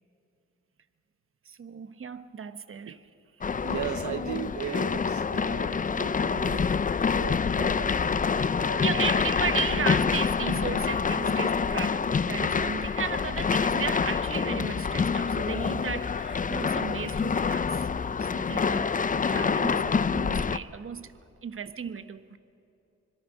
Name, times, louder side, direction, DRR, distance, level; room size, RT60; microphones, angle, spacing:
voice 1, 1.5-3.0 5.9-6.1 8.4-17.8 18.2-21.1 21.4-22.4, right 6 dB, 45° right, 12 dB, 1.1 m, -35 dB
sound 1, 3.4-20.6, left 5 dB, 30° left, 0.5 m, -27 dB
voice 2, 3.6-6.7 7.1-9.3 9.7-9.8, right 9 dB, 75° right, 12 dB, 0.9 m, -38 dB
25.5 x 22.0 x 6.3 m, 2.9 s
cardioid pair, 80°, 30 cm